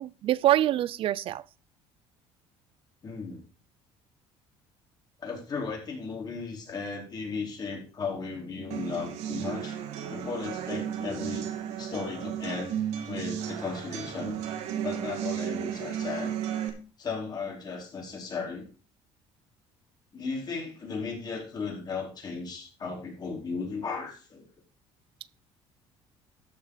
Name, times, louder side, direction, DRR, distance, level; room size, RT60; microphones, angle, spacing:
voice 1, 0.0-1.4, right 13 dB, 55° right, 0.4 m, -25 dB
voice 2, 3.0-3.4 5.2-9.8 10.1-12.7 13.1-14.4 14.8-16.3 17.0-18.7 20.1-24.4, left 4 dB, 35° left, 4.5 m, -35 dB
sound 1, 8.7-16.7, right 9 dB, 75° right, 2.4 m, -34 dB
13.0 x 6.5 x 5.0 m
cardioid pair, 115°, 11 cm